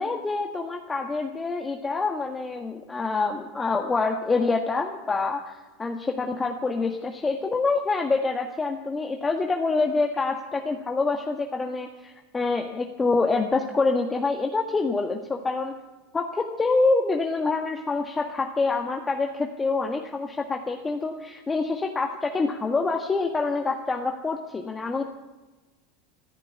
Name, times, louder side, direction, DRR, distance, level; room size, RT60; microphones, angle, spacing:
voice 1, 0.0-15.7 16.1-25.0, left 3 dB, 20° left, 2 dB, 1.5 m, -26 dB
15.0 x 10.5 x 8.4 m, 1.2 s
hypercardioid pair, 80°, 0 cm